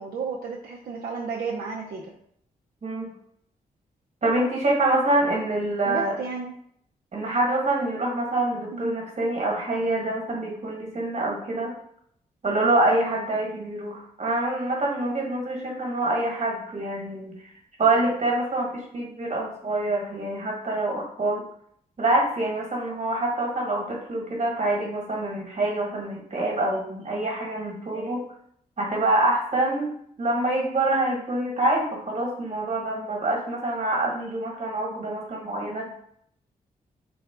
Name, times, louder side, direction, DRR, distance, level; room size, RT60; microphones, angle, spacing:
voice 1, 0.0-2.1 5.9-6.5 8.7-8.9, right 5 dB, 75° right, -2 dB, 0.5 m, -32 dB
voice 2, 2.8-3.1 4.2-6.1 7.1-11.7 12.4-17.4 17.8-21.5 22.0-28.2 28.8-35.9, right 2 dB, 45° right, -1 dB, 1.3 m, -26 dB
4.0 x 2.3 x 3.6 m, 0.68 s
cardioid pair, 65°, 16 cm